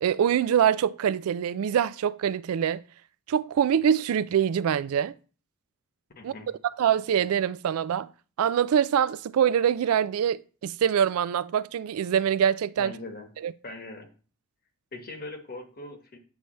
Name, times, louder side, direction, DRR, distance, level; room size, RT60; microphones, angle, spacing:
voice 1, 0.0-2.8 3.3-5.1 6.2-6.3 6.8-8.1 8.4-12.9 13.4-13.5, right 8 dB, 80° right, 0.3 m, -24 dB
voice 2, 6.1-6.5 12.8-13.3 13.6-14.1 14.9-16.2, left 2 dB, 45° left, 1.2 m, -40 dB
8.2 x 3.3 x 6.3 m
head